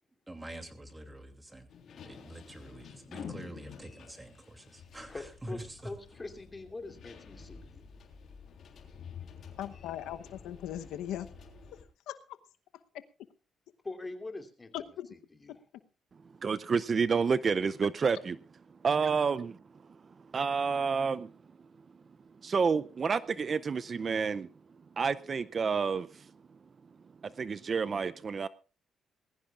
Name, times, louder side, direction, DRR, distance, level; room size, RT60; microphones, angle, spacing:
voice 1, 0.3-1.7 2.0-5.9, right 1 dB, 15° right, 2.7 m, -46 dB
sound 1, 1.7-11.8, left 6 dB, 60° left, 3.5 m, -49 dB
voice 2, 5.1-5.6 5.8-7.9 13.8-15.6, left 2 dB, 20° left, 2.8 m, -43 dB
voice 3, 9.6-11.3 12.1-12.2 14.7-15.1, left 11 dB, 90° left, 0.9 m, -38 dB
voice 4, 16.4-18.4 18.8-19.6 20.3-21.3 22.4-24.5 25.0-26.3 27.2-28.5, right 5 dB, 40° right, 0.5 m, -29 dB
20.0 x 15.0 x 2.4 m
cardioid pair, 90°, 0 cm